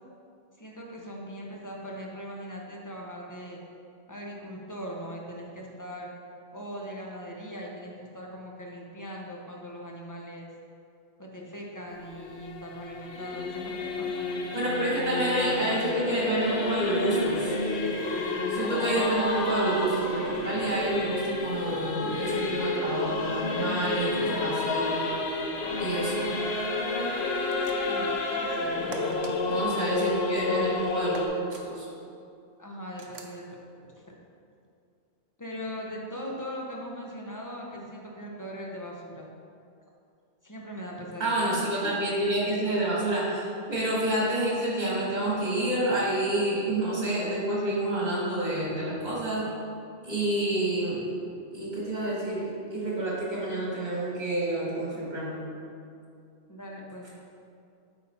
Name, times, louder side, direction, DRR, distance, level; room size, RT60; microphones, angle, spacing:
voice 1, 0.6-3.6 4.1-6.1 6.5-10.5 11.2-15.0 15.5-16.0 27.8-29.4 29.8-30.8 32.6-33.6 34.0-34.1 35.4-39.3 40.4-41.9 56.5-57.3, equal, 20° left, -2 dB, 0.8 m, -40 dB
Singing / Musical instrument, 11.9-31.3, left 3 dB, 75° left, 1.0 m, -30 dB
voice 2, 14.5-17.5 18.5-24.9 25.8-26.3 29.5-31.9 41.2-49.5 50.0-51.0 51.5-55.4, right 1 dB, 40° right, -5 dB, 1.9 m, -28 dB
sound 1, 27.5-28.1 28.9-29.3 31.1-31.7 33.0-33.4, right 4 dB, 70° right, 0.9 m, -43 dB
8.2 x 4.0 x 4.3 m, 2.4 s
omnidirectional pair, 1.1 m